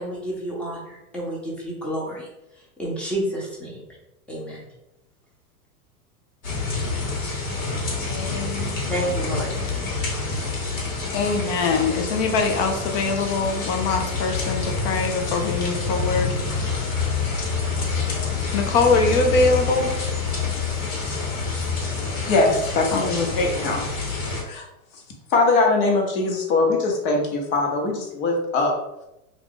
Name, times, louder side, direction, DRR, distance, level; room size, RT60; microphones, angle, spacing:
voice 1, 0.0-2.3 2.8-3.7 4.3-4.6 6.4-6.6 8.9-9.6, right 1 dB, 5° left, -5 dB, 0.8 m, -30 dB
sound 1, 6.4-24.4, left 4 dB, 65° left, 1.3 m, -27 dB
voice 2, 8.1-9.3 11.1-16.8 18.5-19.9 22.9-23.3, left 4 dB, 35° left, 5 dB, 0.4 m, -23 dB
voice 3, 22.2-23.1 23.3-24.0 24.4-24.7 24.9-25.0 25.3-28.7, left 3 dB, 50° left, 1 dB, 1.0 m, -21 dB
2.5 x 2.4 x 3.5 m, 0.90 s
hypercardioid pair, 125°, 44 cm